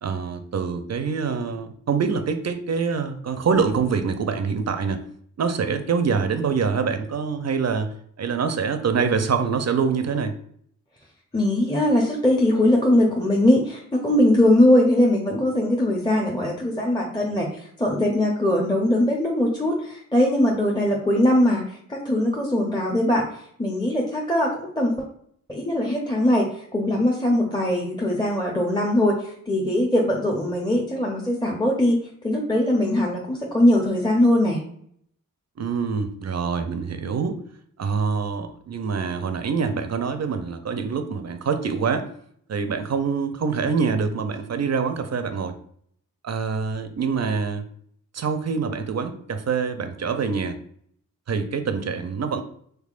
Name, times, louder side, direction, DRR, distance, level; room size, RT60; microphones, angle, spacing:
voice 1, 0.0-5.0 5.4-10.4 35.6-37.4 37.8-42.1 42.5-45.6 46.2-47.7 48.1-50.6 51.3-52.4, right 5 dB, 50° right, 8 dB, 0.5 m, -25 dB
voice 2, 11.3-23.3 23.6-25.0 25.5-34.6, left 1 dB, 15° left, -1 dB, 0.7 m, -21 dB
3.5 x 3.3 x 2.4 m, 0.64 s
cardioid pair, 40°, 34 cm